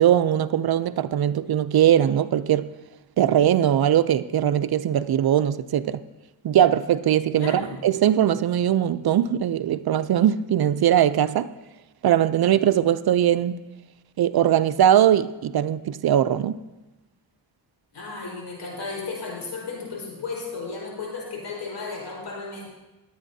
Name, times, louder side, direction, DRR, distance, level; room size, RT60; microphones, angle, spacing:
voice 1, 0.0-2.7 3.2-6.0 6.4-11.5 12.0-13.6 14.2-16.6, right 10 dB, 60° right, 0.5 m, -20 dB
voice 2, 7.4-7.8 17.9-22.6, left 4 dB, 70° left, 4.6 m, -34 dB
20.0 x 9.2 x 2.7 m
cardioid pair, 80°, 43 cm